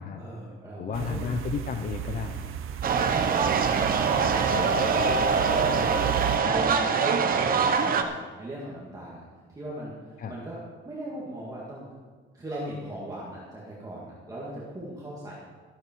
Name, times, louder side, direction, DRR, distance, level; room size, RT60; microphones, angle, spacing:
voice 1, 0.0-1.3 2.9-6.1 6.4-10.6 10.8-11.9 12.3-15.3, right 1 dB, 15° right, -6 dB, 2.1 m, -39 dB
voice 2, 0.8-2.6 10.2-10.3, left 6 dB, 40° left, 6 dB, 0.7 m, -32 dB
sound 1, 0.9-6.4, right 11 dB, 85° right, 0.9 m, -35 dB
sound 2, 2.8-8.0, right 5 dB, 45° right, 0.9 m, -23 dB
13.5 x 13.0 x 4.6 m, 1.4 s
cardioid pair, 175°, 21 cm